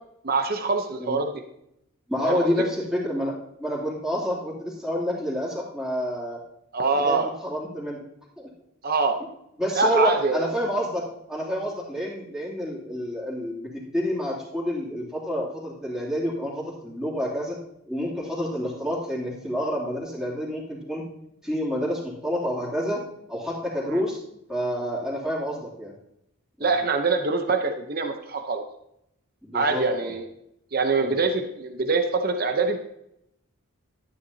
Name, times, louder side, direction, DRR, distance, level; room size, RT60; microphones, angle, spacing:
voice 1, 0.2-1.4 2.2-2.5 6.7-7.3 8.8-9.2 9.8-10.5 23.8-24.0 26.6-28.6 29.5-30.2 30.7-32.8, right 3 dB, 45° right, 5 dB, 0.8 m, -24 dB
voice 2, 2.1-6.4 6.9-8.0 8.4-8.5 9.6-17.6 17.9-21.0 21.4-23.0 23.3-24.2 24.5-25.9 26.6-26.7 29.4-30.1 31.0-31.2, equal, 5° right, -7 dB, 2.8 m, -28 dB
12.5 x 10.0 x 2.8 m, 0.78 s
head